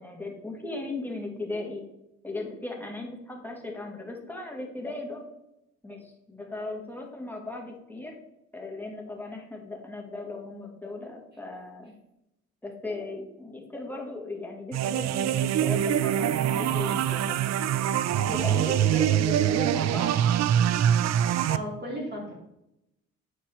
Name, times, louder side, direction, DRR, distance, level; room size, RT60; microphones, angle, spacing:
voice 1, 0.0-1.8 2.2-5.3 5.8-8.2 8.5-11.9 12.6-17.4 17.7-17.8 18.3-20.2, left 2 dB, 5° left, 1 dB, 1.9 m, -37 dB
sound 1, 14.7-21.6, right 10 dB, 60° right, 0.5 m, -24 dB
voice 2, 21.1-22.3, equal, 35° right, -3 dB, 3.3 m, -36 dB
8.8 x 4.8 x 4.3 m, 0.85 s
cardioid pair, 90°, 30 cm